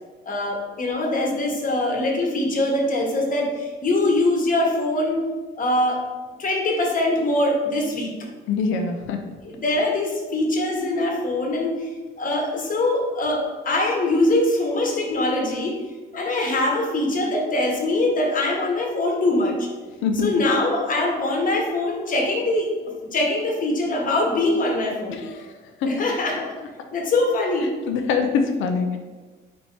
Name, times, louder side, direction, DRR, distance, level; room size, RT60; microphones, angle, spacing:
voice 1, 0.2-5.2 5.5-6.0 6.4-8.1 9.4-11.9 12.2-15.7 16.1-19.7 20.1-22.7 23.1-25.2 25.8-26.5 26.9-27.7, left 2 dB, 45° left, 0 dB, 1.2 m, -23 dB
voice 2, 8.5-9.2 20.0-20.5 25.2-25.5 27.9-29.0, left 5 dB, 85° left, 6 dB, 0.5 m, -23 dB
4.3 x 2.8 x 4.4 m, 1.3 s
cardioid pair, 90°, 20 cm